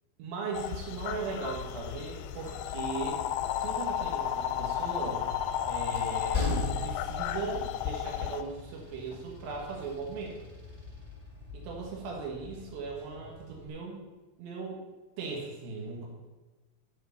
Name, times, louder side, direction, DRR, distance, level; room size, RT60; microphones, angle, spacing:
voice 1, 0.2-3.2 3.6-5.2 5.7-10.4 11.5-14.0 14.4-14.8 15.2-16.1, right 4 dB, 70° right, -1 dB, 3.2 m, -38 dB
sound 1, 0.6-8.4, left 11 dB, 85° left, 2.6 m, -33 dB
Train, 5.1-13.7, left 4 dB, 30° right, 0.5 m, -39 dB
11.0 x 4.6 x 7.0 m, 1.2 s
omnidirectional pair, 4.5 m